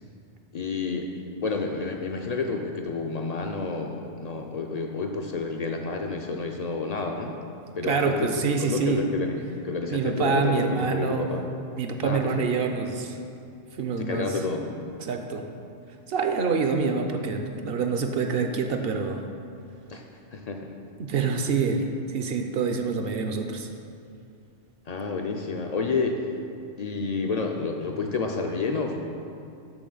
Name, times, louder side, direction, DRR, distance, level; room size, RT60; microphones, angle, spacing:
voice 1, 0.5-1.1 1.4-7.4 7.7-11.5 12.0-12.5 14.0-14.7 19.9-20.1 20.3-20.7 24.9-26.2 26.8-28.9, left 4 dB, 60° left, 2 dB, 0.4 m, -30 dB
voice 2, 7.8-9.0 9.9-11.3 11.8-13.2 13.8-14.4 15.0-15.5 16.1-19.2 21.0-23.7, right 5 dB, 65° right, 5 dB, 0.7 m, -26 dB
12.0 x 4.1 x 3.9 m, 2.6 s
omnidirectional pair, 1.2 m